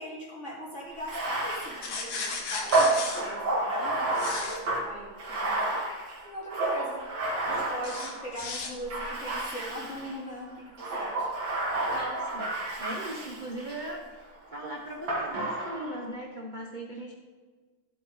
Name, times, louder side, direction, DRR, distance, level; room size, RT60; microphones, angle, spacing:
voice 1, 0.0-5.9 6.2-7.0 7.5-11.3, equal, 30° left, -5 dB, 3.8 m, -40 dB
Bathtub (filling or washing), 1.0-8.3 8.9-10.2 10.7-13.9 15.1-16.1, right 2 dB, 60° right, 2.7 m, -30 dB
sound 1, 1.8-3.2 4.2-4.6 7.8-8.7, left 4 dB, 65° left, 2.2 m, -35 dB
voice 2, 11.9-12.5 12.8-17.1, right 1 dB, 30° right, 0 dB, 0.8 m, -39 dB
15.0 x 8.4 x 3.9 m, 1.4 s
omnidirectional pair, 2.4 m